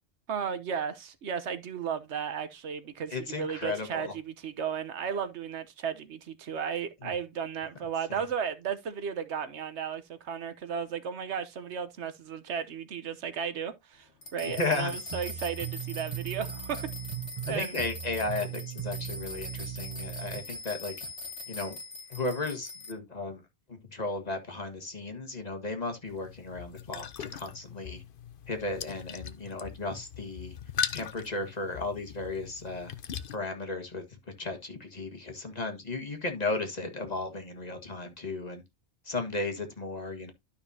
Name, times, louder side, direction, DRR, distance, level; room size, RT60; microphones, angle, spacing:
voice 1, 0.3-16.9 17.5-17.8, right 7 dB, 85° right, 1.2 m, -34 dB
voice 2, 3.1-4.1 7.0-7.1 8.1-8.3 14.4-14.9 17.5-21.1 21.5-21.8 22.1-23.4 23.7-28.0 28.5-30.6 30.9-32.9 33.3-38.6 39.1-40.3, left 3 dB, 40° left, 1.7 m, -35 dB
sound 1, 14.2-22.9, left 2 dB, 80° left, 1.5 m, -42 dB
sound 2, 15.1-20.4, right 11 dB, 35° right, 0.7 m, -38 dB
sound 3, 26.1-33.4, left 8 dB, 60° left, 0.8 m, -39 dB
12.0 x 5.6 x 2.7 m
omnidirectional pair, 1.1 m